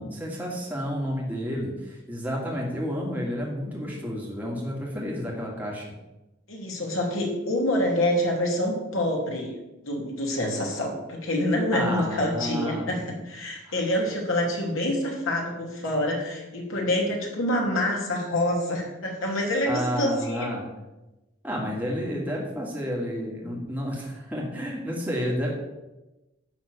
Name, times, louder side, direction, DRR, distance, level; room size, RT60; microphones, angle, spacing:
voice 1, 0.0-5.8 11.7-13.1 13.7-13.8 19.6-20.6 21.4-25.5, equal, 10° right, -3 dB, 2.4 m, -31 dB
voice 2, 6.5-9.5 9.8-20.5, left 1 dB, 80° left, -1 dB, 2.9 m, -26 dB
12.0 x 4.3 x 8.1 m, 1.0 s
head